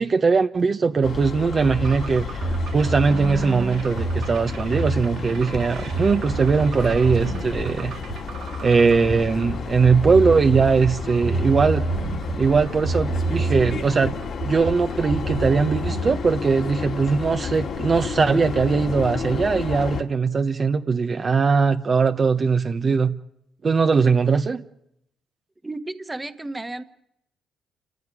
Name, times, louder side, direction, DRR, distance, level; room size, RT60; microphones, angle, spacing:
voice 1, 0.0-2.4 2.7-7.9 8.6-11.8 12.4-14.2 14.4-23.1 23.6-24.6, right 5 dB, 40° right, 1.1 m, -20 dB
sound 1, 1.0-20.0, left 6 dB, 60° left, 2.6 m, -32 dB
sound 2, 1.8-16.1, right 3 dB, 75° right, 4.5 m, -29 dB
voice 2, 25.6-26.8, right 2 dB, 15° right, 1.4 m, -33 dB
28.0 x 15.0 x 9.9 m
cardioid pair, 90°, 0 cm